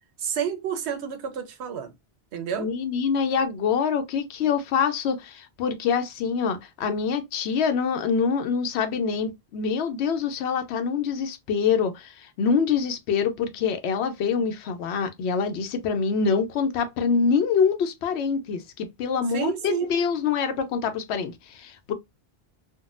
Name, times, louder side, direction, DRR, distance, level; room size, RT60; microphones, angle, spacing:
voice 1, 0.2-1.9 2.3-2.7 19.3-19.9, right 8 dB, 90° right, 0.9 m, -29 dB
voice 2, 2.6-21.9, left 6 dB, 90° left, 0.8 m, -25 dB
3.6 x 2.1 x 2.4 m
omnidirectional pair, 1.1 m